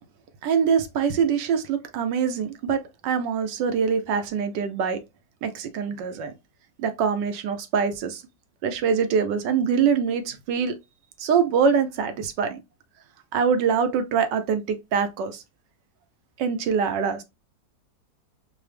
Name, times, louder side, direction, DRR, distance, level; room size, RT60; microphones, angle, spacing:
voice 1, 0.4-5.0 5.4-6.3 6.8-8.2 8.6-10.8 11.2-12.6 13.3-15.4 16.4-17.2, right 6 dB, 80° right, 1.3 m, -24 dB
4.7 x 2.0 x 3.3 m
omnidirectional pair, 1.9 m